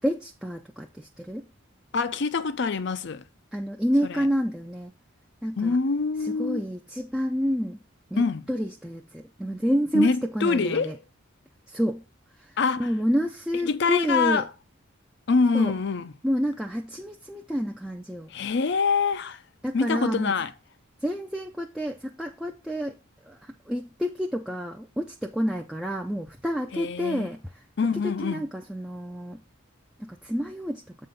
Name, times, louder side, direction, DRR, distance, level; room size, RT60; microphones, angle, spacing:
voice 1, 0.0-1.5 3.5-4.9 5.4-5.8 6.2-7.8 8.1-11.0 11.7-12.0 12.3-14.5 15.5-15.7 16.2-18.3 19.6-20.3 21.0-23.0 23.2-27.7 27.9-29.4 30.0-30.8, equal, 5° right, 0.4 m, -29 dB
voice 2, 1.9-3.2 5.6-6.6 8.2-8.4 9.9-10.9 12.6-12.9 13.7-14.5 15.3-16.1 18.3-19.4 19.7-20.5 26.7-27.3 27.8-28.4, left 4 dB, 55° left, 0.5 m, -25 dB
7.7 x 3.8 x 5.3 m
head